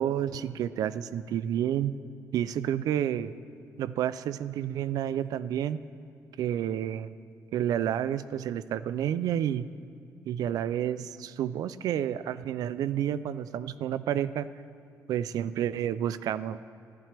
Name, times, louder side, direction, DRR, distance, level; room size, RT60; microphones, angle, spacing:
voice 1, 0.0-2.0 2.3-3.3 3.8-5.8 6.4-7.1 7.5-9.7 10.3-14.5 15.1-16.6, right 10 dB, 85° right, 15 dB, 0.4 m, -30 dB
27.0 x 10.5 x 3.4 m, 2.3 s
cardioid pair, 155°, 6 cm